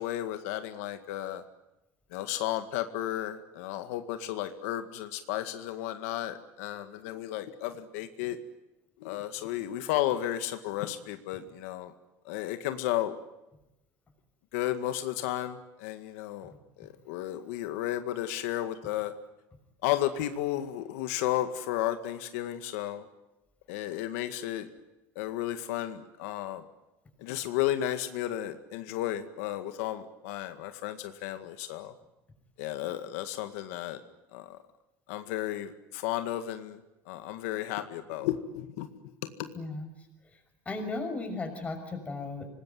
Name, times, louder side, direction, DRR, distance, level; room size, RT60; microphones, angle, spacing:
voice 1, 0.0-1.4 2.1-8.4 9.0-11.9 12.3-13.1 14.5-16.5 16.8-19.1 19.8-23.0 23.7-24.7 25.2-26.6 27.2-31.9 32.6-34.0 34.3-34.5 35.1-36.8 37.1-38.9 39.2-39.5, left 13 dB, 90° left, 8 dB, 1.9 m, -33 dB
voice 2, 39.5-39.9 40.7-42.5, left 3 dB, 15° left, 5 dB, 6.1 m, -35 dB
25.5 x 20.5 x 9.4 m, 0.95 s
cardioid pair, 145°, 8 cm